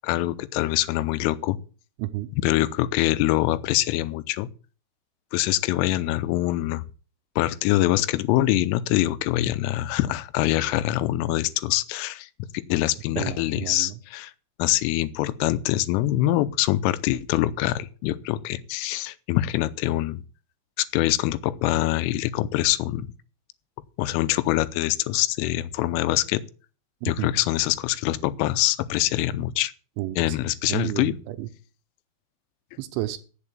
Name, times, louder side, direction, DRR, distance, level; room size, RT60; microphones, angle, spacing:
voice 1, 0.0-1.6 2.4-4.5 5.3-6.8 7.4-14.3 14.6-20.2 20.8-23.1 24.0-26.4 27.1-29.7 30.2-31.2, left 15 dB, 85° left, 3.3 m, -24 dB
voice 2, 2.0-2.3 13.2-14.0 27.0-27.3 30.0-30.4 30.7-31.5 32.8-33.2, right 15 dB, 80° right, 3.1 m, -31 dB
8.9 x 7.5 x 8.7 m
omnidirectional pair, 5.8 m